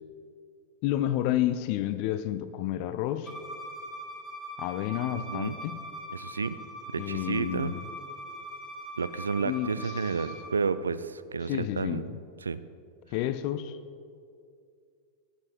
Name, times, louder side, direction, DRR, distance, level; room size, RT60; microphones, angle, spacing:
voice 1, 0.8-3.3 4.6-5.8 7.0-7.8 9.4-10.0 11.4-12.1 13.1-13.8, left 13 dB, 45° left, 13 dB, 0.4 m, -30 dB
Bowed string instrument, 3.3-10.5, equal, ahead, 2.3 m, -42 dB
voice 2, 5.1-5.5 6.1-6.6 6.9-7.7 9.0-12.1 12.4-12.6, right 5 dB, 75° right, 15 dB, 0.3 m, -31 dB
11.0 x 9.4 x 4.4 m, 2.4 s
figure-of-eight pair, 90°, 0 cm